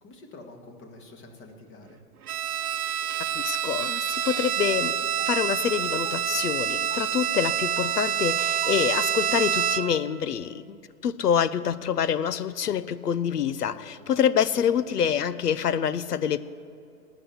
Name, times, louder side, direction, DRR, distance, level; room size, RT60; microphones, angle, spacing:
voice 1, 0.0-2.0 13.7-14.1, left 2 dB, 25° left, 4 dB, 2.1 m, -47 dB
Bowed string instrument, 2.3-10.1, right 9 dB, 70° right, 0.8 m, -27 dB
sound 1, 2.6-2.8 3.5-3.7 4.3-4.6 5.2-5.5 6.0-6.4 6.9-7.2 7.8-8.1 8.6-9.0, right 10 dB, 25° right, 0.4 m, -50 dB
voice 2, 3.3-4.9 5.2-16.4, left 8 dB, 80° left, 16 dB, 0.8 m, -26 dB
18.0 x 6.3 x 9.4 m, 2.6 s
hypercardioid pair, 125°, 46 cm